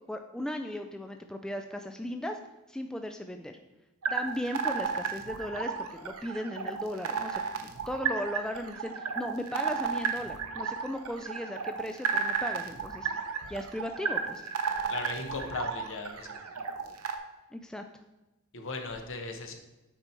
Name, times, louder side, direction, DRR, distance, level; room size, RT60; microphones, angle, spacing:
voice 1, 0.1-2.4 2.7-3.5 4.1-5.7 6.0-7.4 7.9-13.1 13.5-14.4 17.5-17.8, left 1 dB, 5° left, 5 dB, 0.3 m, -36 dB
sound 1, 4.0-17.2, right 6 dB, 75° right, 0.8 m, -33 dB
voice 2, 14.9-16.3 18.5-19.5, left 3 dB, 60° left, 5 dB, 1.0 m, -37 dB
8.9 x 4.4 x 4.4 m, 1.0 s
head